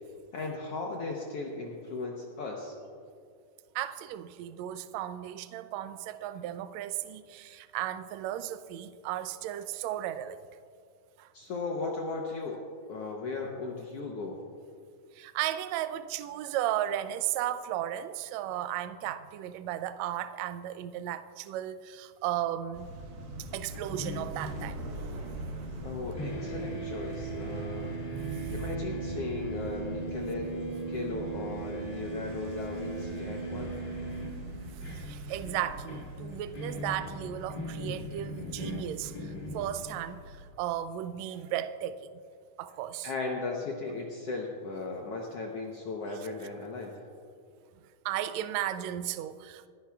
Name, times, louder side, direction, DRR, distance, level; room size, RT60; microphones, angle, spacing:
voice 1, 0.3-2.7 11.3-14.4 25.8-27.9 28.5-33.7 34.9-35.0 37.0-37.1 43.0-47.0, left 3 dB, 70° left, 1.5 m, -37 dB
voice 2, 3.7-10.4 11.2-11.3 15.1-22.9 23.5-24.9 34.9-42.2 42.6-43.1 48.0-49.7, right 12 dB, 85° right, 1.5 m, -35 dB
sound 1, 22.7-40.5, right 1 dB, 70° right, 2.7 m, -42 dB
sound 2, 23.7-25.9 26.2-40.1, right 2 dB, 90° left, 0.4 m, -39 dB
29.5 x 10.0 x 2.4 m
omnidirectional pair, 3.7 m